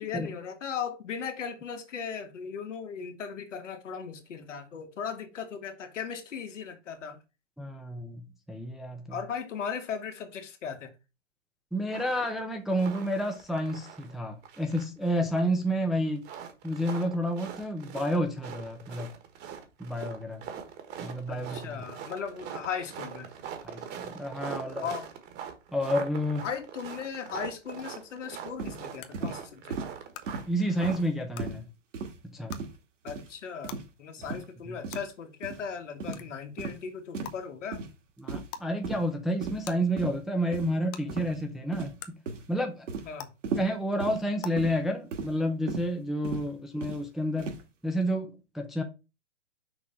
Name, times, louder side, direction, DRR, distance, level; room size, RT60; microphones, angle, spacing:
voice 1, 0.0-7.2 9.1-10.9 21.3-23.3 24.8-25.1 26.4-29.8 33.0-37.8 43.1-43.3 46.3-46.5, left 7 dB, 80° left, 1.9 m, -37 dB
voice 2, 7.6-9.0 11.7-16.2 16.6-19.1 19.8-20.4 21.0-21.8 23.6-24.8 25.7-26.4 30.5-31.7 32.2-32.5 34.6-34.8 38.2-42.2 42.5-42.9 43.6-47.6 47.8-48.8, equal, ahead, 0.4 m, -30 dB
sound 1, 11.9-12.4 12.7-14.2 14.4-15.6 16.2-31.0, right 8 dB, 25° right, 1.3 m, -42 dB
sound 2, 27.8-27.9 29.0-29.1 30.1-30.2 31.3-31.4 32.5-32.6 33.7-33.8 34.9-35.0 36.1-36.2 37.2-37.3 38.5-38.7 39.6-39.7 40.9-41.0 42.0-42.1 43.2-43.3 44.4-44.5, left 9 dB, 30° left, 0.7 m, -40 dB
sound 3, 28.6-28.8 29.1-29.4 29.7-29.9 30.3-30.5 30.8-31.1 31.4-31.6 31.9-32.2 32.5-32.7 33.1-33.3 33.6-33.9 34.2-34.4 34.8-35.0 35.4-35.6 36.0-36.2 36.6-36.8 37.1-37.4 37.7-37.9 38.3-38.6 38.8-39.0 39.4-39.7 40.0-40.2 40.5-40.7 41.1-41.4 41.7-42.0 42.3-42.5 42.9-43.1 43.4-43.7 44.0-44.2 44.6-44.8 45.1-45.3 45.7-45.9 46.2-46.4 46.8-47.0 47.4-47.6, right 4 dB, 85° right, 2.3 m, -36 dB
6.2 x 3.8 x 5.6 m
hypercardioid pair, 135°, 36 cm